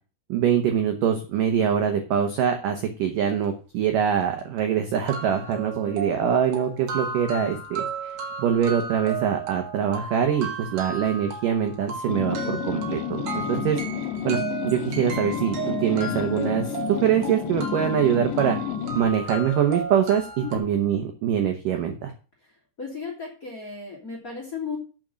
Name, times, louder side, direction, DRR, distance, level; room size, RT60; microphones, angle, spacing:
voice 1, 0.3-8.1 8.4-13.8 14.2-14.4 14.6-18.6 19.0-20.3 20.5-22.1, right 8 dB, 75° right, 5 dB, 2.0 m, -24 dB
sound 1, 4.1-4.2 4.6-4.7 5.1-20.6, right 4 dB, 50° right, 2.6 m, -35 dB
sound 2, 12.1-19.1, left 9 dB, 85° left, 1.9 m, -30 dB
voice 2, 22.8-24.8, left 5 dB, 25° left, -2 dB, 2.3 m, -35 dB
9.0 x 6.1 x 7.6 m, 0.35 s
omnidirectional pair, 5.4 m